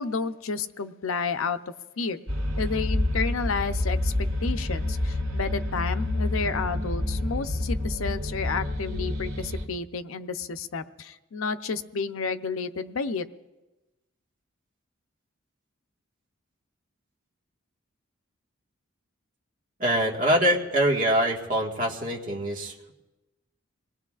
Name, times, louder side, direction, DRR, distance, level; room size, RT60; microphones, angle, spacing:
voice 1, 0.0-1.6 2.0-2.2 2.6-13.3, left 5 dB, 85° left, 10 dB, 0.6 m, -31 dB
sound 1, 2.3-9.6, left 1 dB, 85° right, 1.9 m, -28 dB
voice 2, 19.8-22.9, right 1 dB, 40° right, 0 dB, 1.7 m, -24 dB
27.5 x 19.5 x 2.4 m, 1.1 s
head